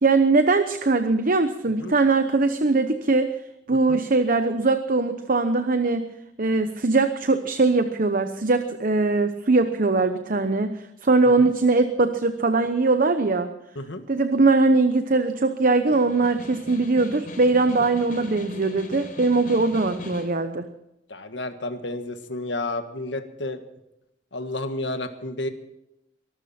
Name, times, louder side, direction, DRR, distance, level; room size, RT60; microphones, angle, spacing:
voice 1, 0.0-3.3 3.7-6.1 6.4-13.5 14.1-20.7, right 3 dB, 50° right, 8 dB, 0.9 m, -21 dB
Snare drum, 15.9-20.4, left 1 dB, 50° left, 4.4 m, -40 dB
voice 2, 21.1-23.6 24.3-25.5, left 2 dB, 80° left, 8 dB, 1.7 m, -31 dB
23.5 x 13.0 x 4.4 m, 0.86 s
head